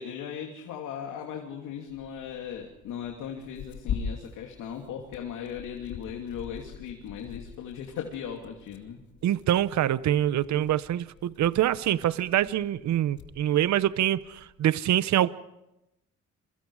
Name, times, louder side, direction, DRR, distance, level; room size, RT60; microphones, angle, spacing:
voice 1, 0.0-9.0 10.3-10.4, left 8 dB, 90° left, 2.9 m, -38 dB
Tearing, 1.9-14.5, left 7 dB, 70° left, 2.4 m, -43 dB
voice 2, 9.2-15.3, right 12 dB, 70° right, 0.8 m, -25 dB
28.0 x 23.0 x 4.9 m
cardioid pair, 90°, 30 cm